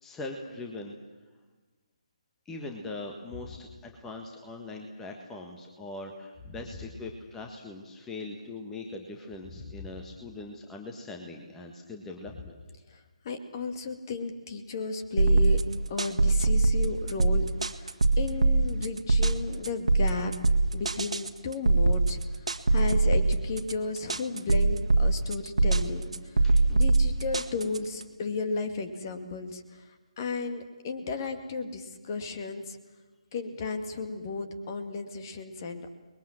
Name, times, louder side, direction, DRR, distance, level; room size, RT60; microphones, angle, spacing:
voice 1, 0.0-1.0 2.4-12.5 26.4-26.8, left 2 dB, 10° left, 2 dB, 1.5 m, -41 dB
voice 2, 9.5-9.9 12.9-15.6 15.9-20.3 20.7-32.8 33.3-35.9, left 4 dB, 30° left, 7 dB, 2.2 m, -34 dB
sound 1, 15.2-28.0, right 2 dB, 65° right, 1.8 m, -23 dB
29.5 x 21.5 x 7.6 m, 1.2 s
figure-of-eight pair, 145°, 4 cm